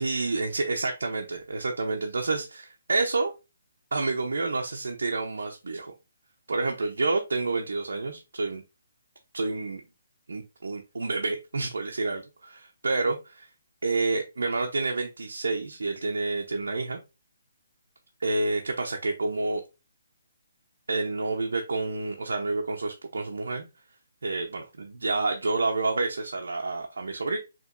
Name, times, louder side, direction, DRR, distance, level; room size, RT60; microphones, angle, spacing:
voice 1, 0.0-3.3 3.9-5.9 6.5-8.6 9.3-9.8 10.3-13.5 13.8-17.0 18.2-19.6 20.9-23.7 24.2-27.4, right 3 dB, 85° right, 1 dB, 0.7 m, -29 dB
5.0 x 3.0 x 2.5 m, 0.28 s
hypercardioid pair, 165°, 0 cm